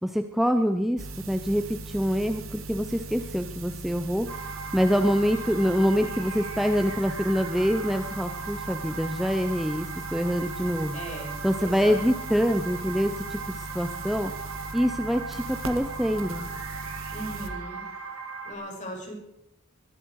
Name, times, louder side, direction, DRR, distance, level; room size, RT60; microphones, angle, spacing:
voice 1, 0.0-4.3 4.7-11.0 11.4-14.3 14.7-16.5, equal, ahead, 7 dB, 0.7 m, -25 dB
sound 1, 1.0-17.5, right 3 dB, 75° right, 1.9 m, -40 dB
sound 2, 4.3-18.5, right 5 dB, 90° right, 3.7 m, -38 dB
voice 2, 10.9-12.1 17.1-17.8 18.4-19.1, equal, 35° left, -1 dB, 5.9 m, -38 dB
22.5 x 13.0 x 4.8 m, 0.83 s
head